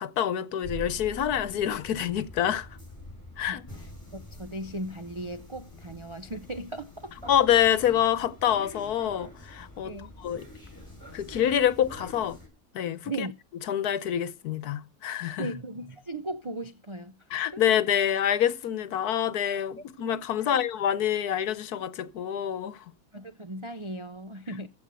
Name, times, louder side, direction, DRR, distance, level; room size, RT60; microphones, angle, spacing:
voice 1, 0.0-2.7 3.4-3.6 7.3-10.5 11.1-12.4 12.7-13.3 13.7-15.5 17.3-22.8, left 10 dB, 80° left, 1.4 m, -26 dB
sound 1, 0.6-12.5, equal, 10° left, 6.4 m, -45 dB
voice 2, 4.1-7.3 9.8-10.1 13.0-13.3 15.4-17.1 17.5-17.6 20.5-20.6 23.1-24.7, right 1 dB, 45° right, 0.4 m, -37 dB
15.0 x 5.4 x 7.6 m
omnidirectional pair, 1.6 m